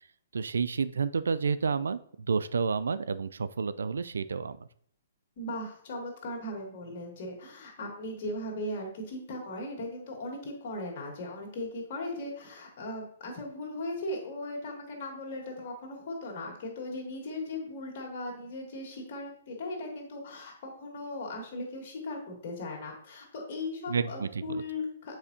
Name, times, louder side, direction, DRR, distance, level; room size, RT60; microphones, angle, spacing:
voice 1, 0.3-4.7 23.9-24.6, right 5 dB, 75° right, 15 dB, 0.3 m, -30 dB
voice 2, 5.4-25.2, left 1 dB, 50° left, 0 dB, 2.1 m, -38 dB
7.3 x 4.8 x 2.7 m, 0.64 s
hypercardioid pair, 125°, 0 cm